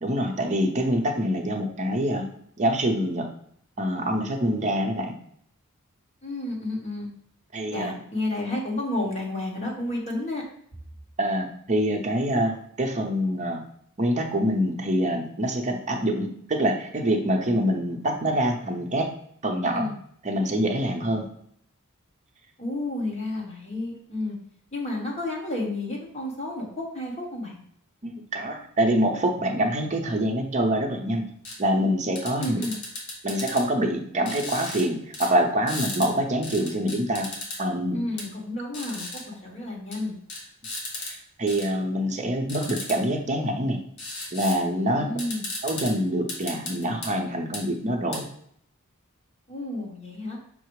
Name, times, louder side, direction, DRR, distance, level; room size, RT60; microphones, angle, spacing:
voice 1, 0.0-2.2 2.6-3.3 3.8-5.1 7.5-7.9 11.2-13.6 14.0-19.1 19.4-19.9 20.2-21.3 28.0-31.3 31.6-32.6 33.2-37.3 37.6-38.0 41.4-43.8 44.3-45.1 45.6-48.3, equal, 35° right, 2 dB, 0.7 m, -25 dB
voice 2, 6.2-7.1 7.7-10.4 19.6-19.9 22.6-24.4 24.7-27.6 32.4-32.8 37.9-40.2 44.9-45.5 49.5-50.4, left 1 dB, 30° left, -3 dB, 1.2 m, -31 dB
sound 1, 31.4-31.6 32.2-33.6 34.3-34.9 35.1-35.3 35.7-36.1 36.4-37.6 38.2-38.3 38.7-39.2 39.9-40.0 40.3-41.1 41.5-41.7 42.5-43.0 44.0-44.6 44.9-45.0 45.2-45.9 46.3-47.1 47.5-47.6 48.1-48.2, left 2 dB, 75° left, 1.3 m, -35 dB
5.7 x 2.0 x 4.6 m, 0.65 s
head